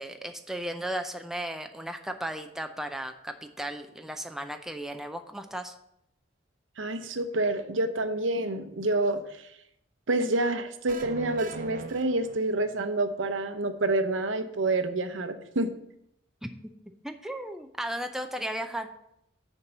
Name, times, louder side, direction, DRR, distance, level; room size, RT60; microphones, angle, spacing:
voice 1, 0.0-5.7 16.4-16.7 17.0-18.9, right 1 dB, ahead, 6 dB, 0.4 m, -35 dB
voice 2, 6.8-9.4 10.1-15.7, right 2 dB, 80° right, 9 dB, 0.8 m, -28 dB
sound 1, 10.9-12.9, right 4 dB, 45° right, 0.7 m, -41 dB
6.9 x 4.5 x 6.6 m, 0.78 s
head